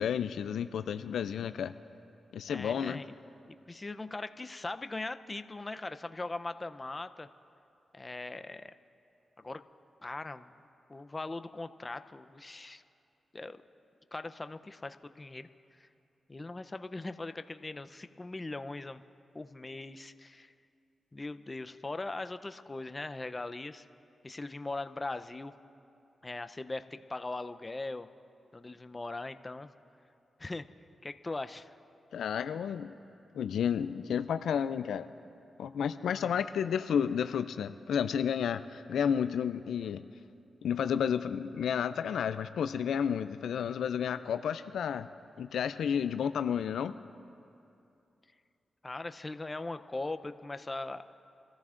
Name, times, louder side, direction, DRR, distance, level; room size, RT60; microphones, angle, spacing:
voice 1, 0.0-1.7 2.3-3.0 32.1-32.9 33.4-35.1 35.6-40.1 40.6-45.1 45.4-46.9, left 8 dB, 85° left, 11 dB, 0.3 m, -31 dB
voice 2, 2.5-3.1 3.5-7.3 7.9-8.7 9.4-9.6 10.0-10.5 10.9-12.8 13.3-13.6 14.1-15.5 15.8-15.9 16.3-19.0 19.3-20.5 21.1-23.8 24.2-25.5 26.2-28.1 28.5-29.7 30.4-30.6 31.0-31.7 36.0-36.4 48.8-51.1, left 2 dB, 30° left, 10 dB, 0.6 m, -40 dB
26.5 x 14.0 x 2.5 m, 2.7 s
cardioid pair, 55°, 0 cm